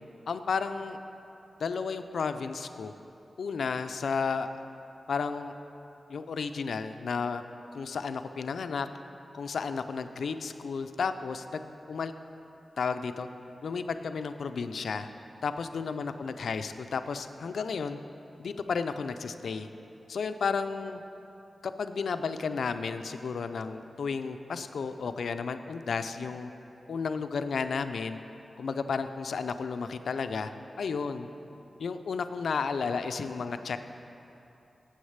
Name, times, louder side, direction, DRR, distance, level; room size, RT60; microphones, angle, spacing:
voice 1, 0.3-1.0 1.6-2.9 3.4-4.5 5.1-5.5 6.1-7.4 7.7-8.9 9.3-11.6 11.9-12.1 12.8-13.3 13.6-15.1 15.4-18.0 18.4-19.7 20.1-21.0 21.6-26.5 26.9-28.2 28.6-30.5 30.8-31.3 31.8-33.8, left 5 dB, 85° left, 9 dB, 0.4 m, -32 dB
7.9 x 6.4 x 8.0 m, 3.0 s
cardioid pair, 60°, 0 cm